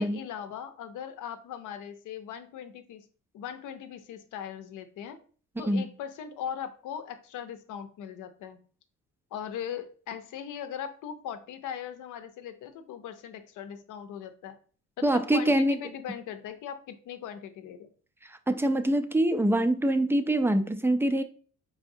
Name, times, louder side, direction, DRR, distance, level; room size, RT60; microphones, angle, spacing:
voice 1, 0.0-3.0 3.3-5.2 5.6-8.6 9.3-14.6 15.0-17.9, left 8 dB, 85° left, 0.7 m, -39 dB
voice 2, 15.0-15.8 18.5-21.2, right 1 dB, 10° right, 0.4 m, -24 dB
4.8 x 3.5 x 2.6 m
cardioid pair, 90°, 30 cm